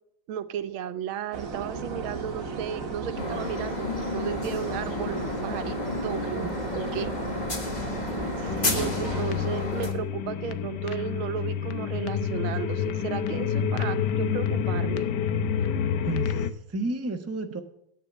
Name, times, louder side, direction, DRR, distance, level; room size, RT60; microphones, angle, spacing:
voice 1, 0.3-5.8 6.0-7.1 8.4-15.1, right 9 dB, 90° right, 11 dB, 1.6 m, -34 dB
sound 1, 1.3-9.2, right 4 dB, 45° right, 1.9 m, -35 dB
sound 2, 3.2-9.9, left 3 dB, 25° left, 1.4 m, -32 dB
voice 2, 6.2-6.7 16.0-17.6, right 2 dB, 10° right, 5 dB, 0.7 m, -33 dB
sound 3, 8.5-16.5, left 7 dB, 65° left, 1.3 m, -28 dB
10.0 x 8.7 x 6.2 m, 0.76 s
omnidirectional pair, 2.2 m